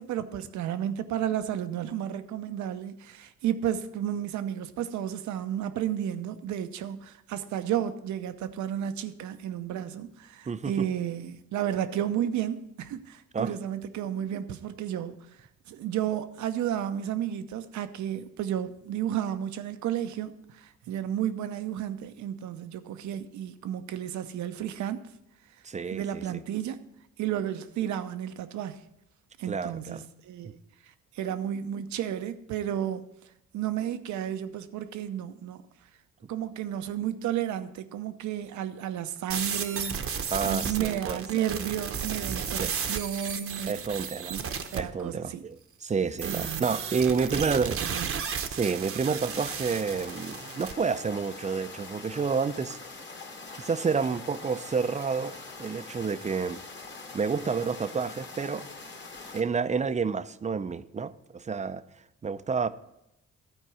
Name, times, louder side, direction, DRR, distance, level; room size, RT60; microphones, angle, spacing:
voice 1, 0.0-15.2 15.7-25.0 25.9-26.8 27.2-28.8 29.4-30.6 31.1-33.0 33.5-35.6 36.3-43.7 44.3-45.4 46.2-46.7 47.4-47.5 47.8-48.1, right 10 dB, 75° right, 0.7 m, -32 dB
voice 2, 10.5-10.9 13.3-13.5 25.6-26.2 29.4-30.0 40.3-41.2 42.5-42.7 43.7-44.4 44.7-47.8 48.5-52.8 53.5-56.6 57.1-58.6 59.3-61.8 62.2-62.7, right 5 dB, 25° right, 0.5 m, -29 dB
sound 1, 39.3-44.8 46.2-50.7, right 7 dB, 50° right, 0.9 m, -34 dB
sound 2, 49.3-59.4, left 3 dB, 40° left, 1.7 m, -43 dB
12.0 x 4.5 x 6.1 m
cardioid pair, 75°, 29 cm